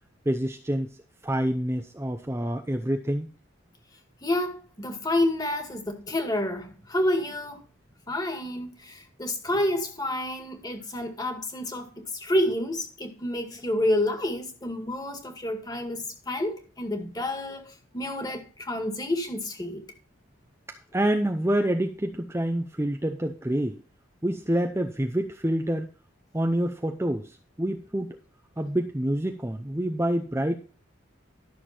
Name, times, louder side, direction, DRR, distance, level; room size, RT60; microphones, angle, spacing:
voice 1, 0.3-1.0 1.2-3.3 20.9-23.8 24.2-25.9 26.3-28.2 28.6-30.6, right 1 dB, 15° right, 0.6 m, -27 dB
voice 2, 4.2-7.6 8.1-19.8, left 1 dB, 20° left, 2.0 m, -29 dB
12.5 x 6.7 x 4.4 m
head